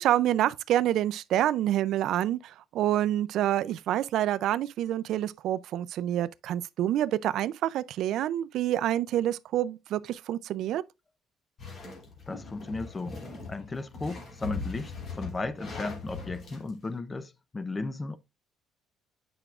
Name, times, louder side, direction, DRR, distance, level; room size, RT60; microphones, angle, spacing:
voice 1, 0.0-10.8, right 12 dB, 70° right, 0.3 m, -27 dB
sound 1, 11.6-16.7, left 4 dB, 40° left, 2.5 m, -40 dB
voice 2, 12.3-13.2 13.5-18.2, left 3 dB, 20° left, 0.6 m, -35 dB
8.9 x 5.9 x 2.4 m
cardioid pair, 135°, 0 cm